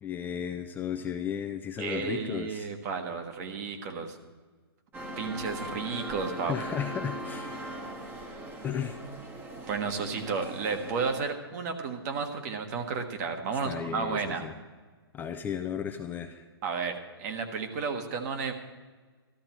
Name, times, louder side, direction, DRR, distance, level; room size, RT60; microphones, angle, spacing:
voice 1, 0.0-2.7 6.5-7.7 8.6-9.0 13.6-14.6 15.1-16.4, left 8 dB, 15° left, 6 dB, 0.4 m, -34 dB
voice 2, 1.8-4.2 5.2-6.5 9.7-14.5 16.6-18.5, right 5 dB, 40° right, 5 dB, 1.5 m, -32 dB
sound 1, 4.9-11.3, equal, 15° right, 1.1 m, -40 dB
13.0 x 12.0 x 4.5 m, 1.4 s
hypercardioid pair, 135°, 13 cm